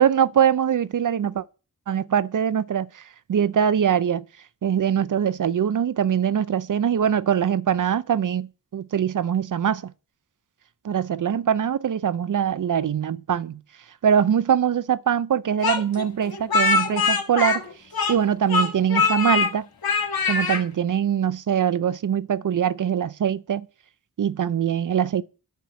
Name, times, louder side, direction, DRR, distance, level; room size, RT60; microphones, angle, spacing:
voice 1, 0.0-1.4 1.9-2.9 3.3-4.2 4.6-9.9 10.8-13.6 14.0-17.6 18.1-19.6 20.3-23.6 24.2-25.2, right 8 dB, 60° right, 0.6 m, -22 dB
Speech, 15.6-18.2 18.5-19.5 19.8-20.6, left 4 dB, 80° left, 1.8 m, -22 dB
10.5 x 4.4 x 7.4 m
wide cardioid pair, 95°, 36 cm